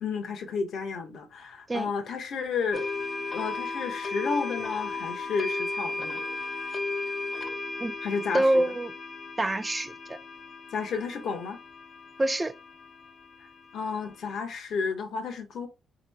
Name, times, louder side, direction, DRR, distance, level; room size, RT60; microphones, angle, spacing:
voice 1, 0.0-2.8 3.3-6.2 8.0-8.6 10.7-11.6 13.7-15.7, left 5 dB, 65° left, 1.0 m, -32 dB
sound 1, 2.7-14.3, left 3 dB, 40° left, 0.8 m, -35 dB
voice 2, 8.3-8.9 9.4-10.2 12.2-12.5, right 1 dB, 20° right, 0.3 m, -25 dB
3.7 x 3.0 x 3.4 m
cardioid pair, 90°, 0 cm